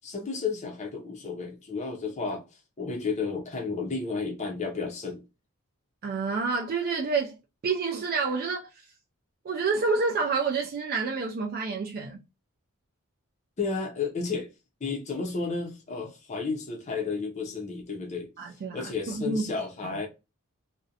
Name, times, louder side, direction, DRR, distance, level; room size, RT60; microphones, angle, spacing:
voice 1, 0.0-5.2 13.6-14.5 14.8-18.3 18.7-20.1, left 4 dB, 30° left, 0.5 m, -32 dB
voice 2, 6.0-7.4 7.6-8.9 9.4-12.2 18.4-19.5 19.8-20.0, right 4 dB, 40° right, 0.3 m, -28 dB
2.5 x 2.1 x 2.6 m
head